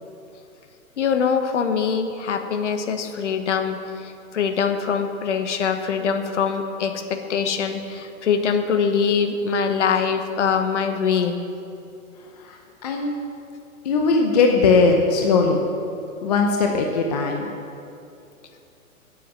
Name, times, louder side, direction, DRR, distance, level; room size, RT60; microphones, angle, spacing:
voice 1, 1.0-11.4, left 6 dB, 55° left, 7 dB, 1.2 m, -23 dB
voice 2, 12.8-13.2 13.8-15.6 16.2-17.5, left 4 dB, 30° left, 2 dB, 0.7 m, -19 dB
11.0 x 7.9 x 7.2 m, 2.7 s
hypercardioid pair, 165°, 44 cm